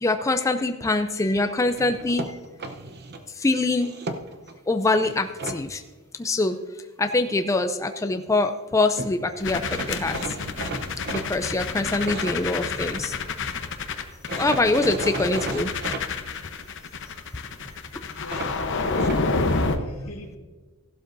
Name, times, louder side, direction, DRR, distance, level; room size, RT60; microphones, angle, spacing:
voice 1, 0.0-2.4 3.4-3.9 4.7-5.8 6.2-6.6 7.0-10.2 11.1-13.2 14.4-15.7, left 2 dB, 15° left, 7 dB, 0.4 m, -24 dB
sound 1, 1.8-3.2 3.8-4.5 5.0-5.6 8.7-8.8 9.0-9.1 9.7-13.2 14.3-16.0 18.3-19.2, right 2 dB, 50° right, 0.8 m, -34 dB
sound 2, 9.4-19.8, left 4 dB, 55° left, 0.9 m, -28 dB
voice 2, 18.2-20.4, left 1 dB, 85° left, 2 dB, 1.9 m, -40 dB
15.5 x 12.0 x 2.6 m, 1.3 s
head